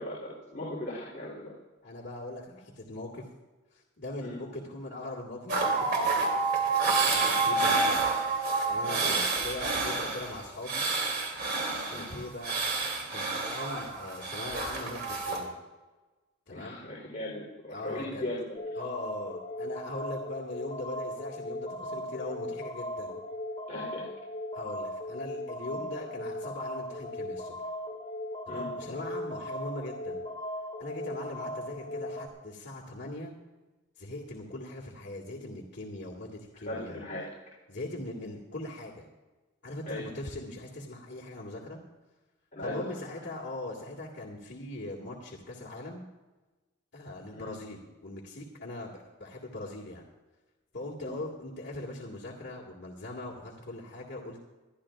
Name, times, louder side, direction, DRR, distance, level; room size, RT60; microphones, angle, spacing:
voice 1, 0.0-1.5 4.2-4.4 8.8-9.2 11.9-12.0 16.5-18.6 23.7-24.1 28.5-28.7 36.6-37.2 39.9-40.1 42.5-42.8 47.3-47.5 51.0-51.1, left 1 dB, 40° left, -6 dB, 3.4 m, -38 dB
voice 2, 1.8-3.3 3.7-6.2 6.8-10.8 11.9-12.6 13.1-15.6 16.5-16.9 17.7-18.2 18.8-23.2 24.5-27.6 28.5-30.2 30.8-33.3 34.0-37.0 37.7-39.1 39.6-41.8 42.6-46.0 46.9-50.1 50.7-54.4, left 2 dB, 60° left, -4 dB, 1.9 m, -40 dB
sound 1, 5.5-15.4, right 4 dB, 55° right, 2.9 m, -29 dB
sound 2, 18.6-32.3, left 1 dB, 25° left, 2.8 m, -38 dB
26.0 x 11.5 x 2.4 m, 1.2 s
head